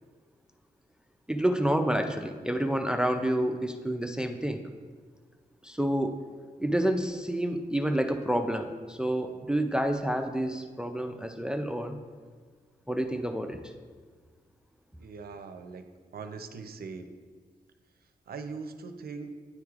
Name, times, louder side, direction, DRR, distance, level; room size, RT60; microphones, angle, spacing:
voice 1, 1.3-4.6 5.6-6.2 6.6-12.0 12.9-13.7, right 1 dB, 5° right, 6 dB, 0.3 m, -29 dB
voice 2, 15.0-15.8 16.1-17.1 18.3-19.4, right 4 dB, 70° right, 8 dB, 0.5 m, -41 dB
9.6 x 4.6 x 2.4 m, 1.5 s
wide cardioid pair, 125°, 16 cm